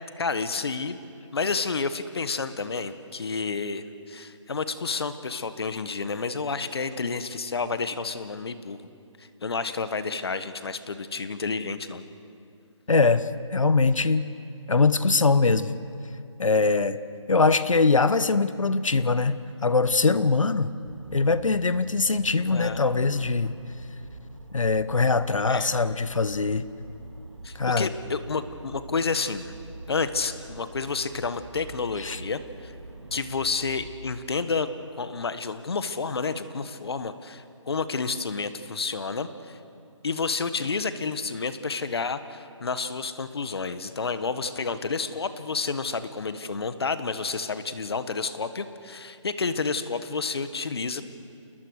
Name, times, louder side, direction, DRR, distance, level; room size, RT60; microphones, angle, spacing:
voice 1, 0.2-1.0 1.3-8.8 9.2-12.0 22.5-22.8 25.5-25.8 27.4-29.4 29.9-32.7 33.1-34.7 35.0-39.6 40.0-51.0, left 4 dB, 50° left, 11 dB, 1.5 m, -30 dB
voice 2, 12.9-14.3 14.7-15.7 16.4-17.0 17.3-20.7 21.1-23.6 24.5-26.6 27.5-27.9 32.0-32.2, left 4 dB, 80° left, 14 dB, 1.2 m, -22 dB
sound 1, 20.8-33.9, right 2 dB, 60° right, 2.2 m, -45 dB
29.5 x 20.5 x 6.6 m, 2.5 s
figure-of-eight pair, 165°, 16 cm